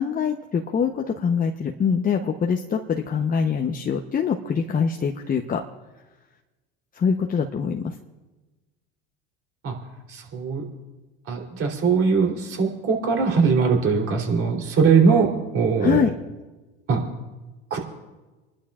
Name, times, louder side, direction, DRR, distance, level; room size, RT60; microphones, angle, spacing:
voice 1, 0.0-5.6 6.9-8.0 15.8-16.1, left 6 dB, 30° left, 3 dB, 0.9 m, -24 dB
voice 2, 10.1-10.7 11.3-15.3 15.5-16.0 16.9-17.0 17.7-17.8, right 5 dB, 50° right, 1 dB, 3.5 m, -21 dB
29.0 x 11.5 x 2.5 m, 1.2 s
hypercardioid pair, 85°, 30 cm